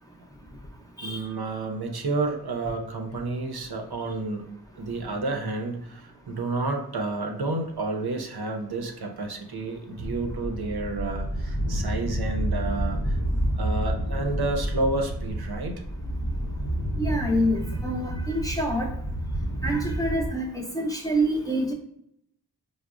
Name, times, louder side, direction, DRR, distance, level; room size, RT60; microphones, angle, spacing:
voice 1, 1.0-4.5 4.8-13.2 13.5-15.8, right 2 dB, 65° right, 3 dB, 0.5 m, -30 dB
sound 1, 10.0-20.4, equal, 55° left, 1.0 m, -29 dB
voice 2, 17.0-18.9 19.6-21.7, right 1 dB, 10° left, -2 dB, 0.6 m, -27 dB
4.6 x 2.0 x 2.4 m, 0.74 s
wide cardioid pair, 45°, 40 cm